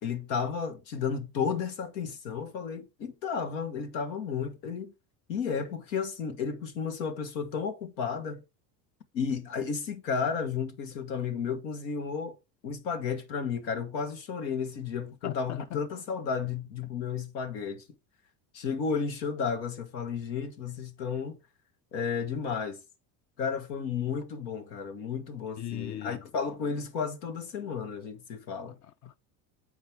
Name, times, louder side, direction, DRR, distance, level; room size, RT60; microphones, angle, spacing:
voice 1, 0.0-4.9 5.3-8.4 9.1-12.4 12.6-17.8 18.5-21.4 21.9-22.8 23.4-28.8, left 6 dB, 90° left, 1.5 m, -33 dB
voice 2, 15.2-15.9 25.6-26.3 28.8-29.3, left 12 dB, 35° left, 0.4 m, -39 dB
7.9 x 5.1 x 4.5 m
supercardioid pair, 95°, 50 cm